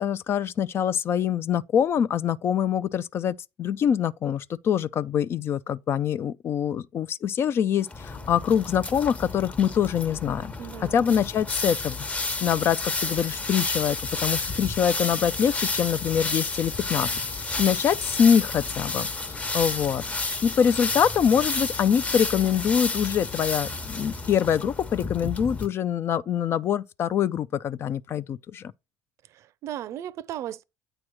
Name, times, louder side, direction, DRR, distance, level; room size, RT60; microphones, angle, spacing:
voice 1, 0.0-10.5 10.9-12.0 12.4-17.1 17.6-20.0 20.4-28.7, left 8 dB, 45° left, 0.4 m, -24 dB
sound 1, 7.9-25.7, left 3 dB, 25° left, 1.0 m, -31 dB
voice 2, 10.6-11.2 29.3-30.6, right 11 dB, 60° right, 0.5 m, -36 dB
8.7 x 3.0 x 6.3 m
supercardioid pair, 100°, 6 cm